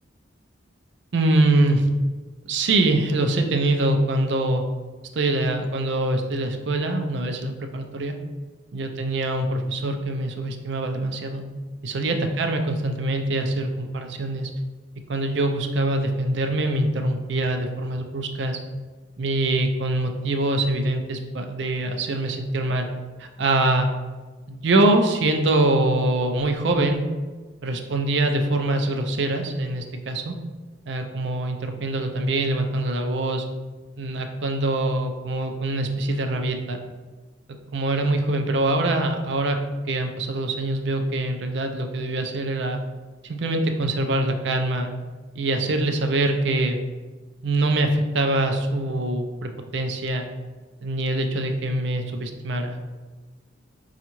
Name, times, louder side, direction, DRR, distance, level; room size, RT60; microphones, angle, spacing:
voice 1, 1.1-1.9 2.5-4.6 5.2-8.2 8.7-11.4 11.8-14.5 15.1-18.6 19.2-22.9 23.2-23.9 24.5-27.0 27.6-30.4 30.9-33.5 34.0-36.8 37.5-42.8 43.2-44.9 45.4-46.8 47.4-50.3 50.8-52.8, right 2 dB, 65° right, 5 dB, 0.4 m, -24 dB
5.3 x 2.4 x 2.9 m, 1.3 s
head